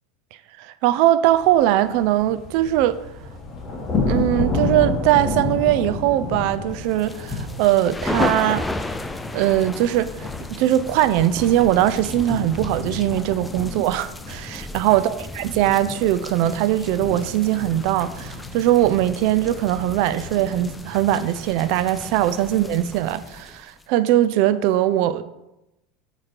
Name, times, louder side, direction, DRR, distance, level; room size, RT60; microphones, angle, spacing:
voice 1, 0.6-3.0 4.1-8.7 9.3-15.1 15.4-25.2, right 13 dB, 65° right, 0.4 m, -20 dB
sound 1, 1.3-20.8, left 3 dB, 25° left, 1.3 m, -31 dB
sound 2, 6.9-23.8, left 2 dB, 10° left, 0.4 m, -34 dB
7.4 x 3.1 x 4.4 m
supercardioid pair, 120°, 0 cm